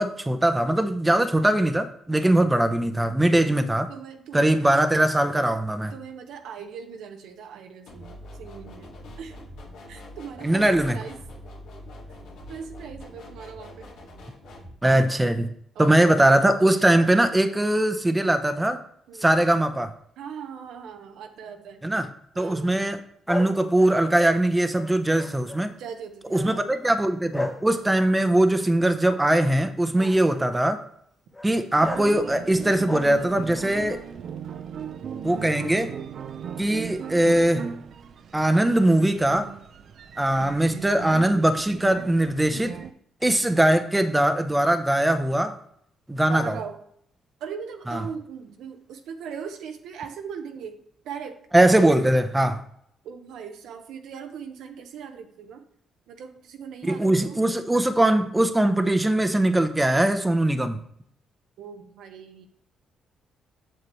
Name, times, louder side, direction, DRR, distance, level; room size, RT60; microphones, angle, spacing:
voice 1, 0.0-3.9 4.3-5.9 10.4-11.0 14.8-15.5 15.8-18.8 19.2-19.9 21.8-22.1 22.4-23.0 23.3-25.7 26.3-30.8 31.4-34.0 35.2-35.9 36.6-37.7 38.3-39.5 40.2-42.8 43.2-45.6 46.1-46.6 47.9-48.0 51.5-52.6 56.9-60.8, right 1 dB, 10° right, 0.7 m, -21 dB
voice 2, 3.9-4.7 5.9-9.4 9.9-11.2 12.5-13.9 15.7-16.0 19.1-19.4 20.2-21.8 22.3-22.8 25.4-26.7 30.0-30.2 46.3-46.8 47.4-50.8 51.0-51.4 53.0-55.6 56.1-57.4 61.6-62.5, right 7 dB, 80° right, 0.9 m, -39 dB
sound 1, 7.9-14.7, left 1 dB, 85° left, 2.0 m, -44 dB
sound 2, 23.3-25.8 26.3-26.7 27.3-29.5 30.0-30.4 31.3-31.5 31.8-32.2 32.6-33.5, left 2 dB, 10° left, 1.0 m, -36 dB
sound 3, 31.8-42.9, right 7 dB, 60° right, 0.5 m, -38 dB
7.7 x 6.7 x 3.1 m
cardioid pair, 90°, 0 cm